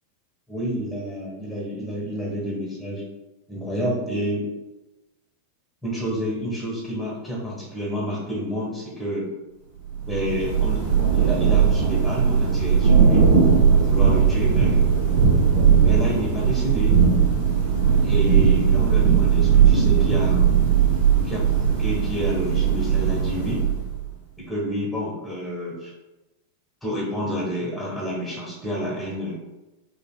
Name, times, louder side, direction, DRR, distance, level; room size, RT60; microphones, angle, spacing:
voice 1, 0.5-3.0 3.5-4.6 5.8-9.3 10.0-10.8 11.1-13.3 13.7-14.8 15.8-17.0 18.0-20.5 21.2-23.6 24.4-25.9 26.8-29.3, equal, ahead, -6 dB, 1.3 m, -29 dB
Thunder / Rain, 9.9-24.0, right 7 dB, 55° right, 1.1 m, -18 dB
5.2 x 2.4 x 2.3 m, 1.0 s
figure-of-eight pair, 90°, 0 cm